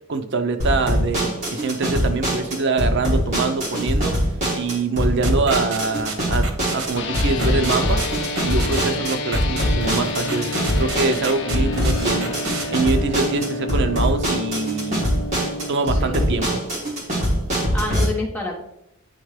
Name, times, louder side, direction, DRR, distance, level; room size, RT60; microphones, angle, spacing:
voice 1, 0.1-4.2 4.5-8.0 8.4-12.3 12.7-15.1 15.4-16.6, right 3 dB, 60° right, 8 dB, 0.6 m, -24 dB
sound 1, 0.6-18.0, equal, 35° right, 2.5 m, -23 dB
sound 2, 5.0-12.6, right 4 dB, 90° right, 0.8 m, -31 dB
sound 3, 7.0-16.4, left 3 dB, 60° left, 0.7 m, -30 dB
voice 2, 15.7-16.4 17.7-18.6, left 2 dB, 10° left, -2 dB, 1.3 m, -29 dB
9.5 x 3.6 x 3.2 m, 0.78 s
head